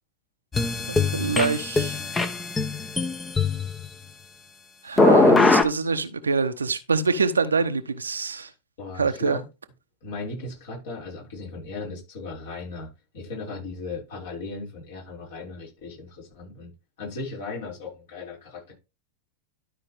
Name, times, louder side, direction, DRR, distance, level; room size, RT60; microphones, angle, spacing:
sound 1, 0.5-3.9 5.0-5.6, left 3 dB, 15° left, 1.0 m, -21 dB
voice 1, 0.9-2.0 4.8-8.5 9.0-9.4, right 4 dB, 75° right, 0.9 m, -25 dB
voice 2, 8.8-9.4 10.0-12.9 13.1-16.7 17.0-18.7, left 3 dB, 55° left, 6.0 m, -37 dB
12.5 x 5.3 x 3.5 m
figure-of-eight pair, 90°, 0 cm